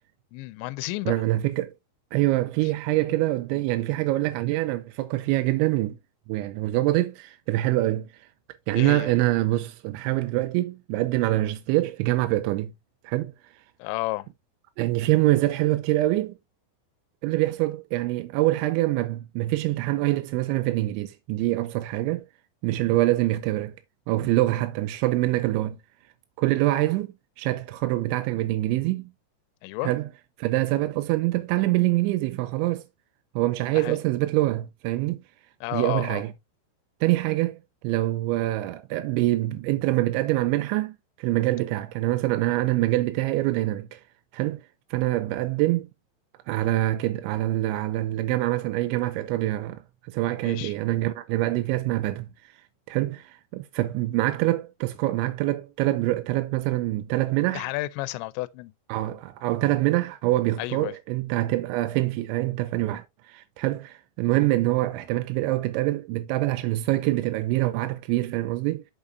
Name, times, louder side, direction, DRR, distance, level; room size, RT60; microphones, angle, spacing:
voice 1, 0.3-1.1 8.7-9.1 13.8-14.3 29.6-29.9 33.7-34.0 35.6-36.2 50.4-50.8 57.5-58.7 60.6-61.0, left 19 dB, 85° left, 2.8 m, -31 dB
voice 2, 1.1-1.7 2.1-6.0 6.3-8.1 8.7-12.7 13.0-13.3 14.8-16.3 17.2-22.3 22.6-23.8 24.1-25.8 26.4-27.1 27.4-29.1 29.8-30.1 30.4-32.8 33.4-35.2 35.7-36.3 37.0-37.6 37.8-44.0 44.3-44.6 44.9-45.9 46.5-49.8 50.1-52.3 52.9-57.7 58.9-68.9, right 17 dB, 90° right, 3.0 m, -25 dB
8.6 x 7.0 x 2.6 m
omnidirectional pair, 5.2 m